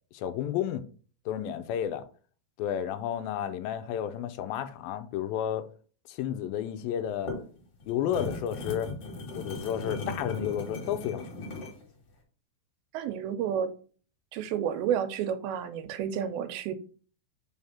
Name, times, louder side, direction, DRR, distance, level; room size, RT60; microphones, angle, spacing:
voice 1, 0.1-0.8 1.3-2.1 2.6-5.6 6.1-7.3 7.9-8.9 9.4-11.5, left 10 dB, 85° left, 2.3 m, -32 dB
sound 1, 7.0-11.8, left 3 dB, 45° left, 2.4 m, -37 dB
voice 2, 12.9-13.7 14.3-16.7, right 8 dB, 90° right, 2.6 m, -30 dB
5.5 x 3.5 x 5.6 m
omnidirectional pair, 4.2 m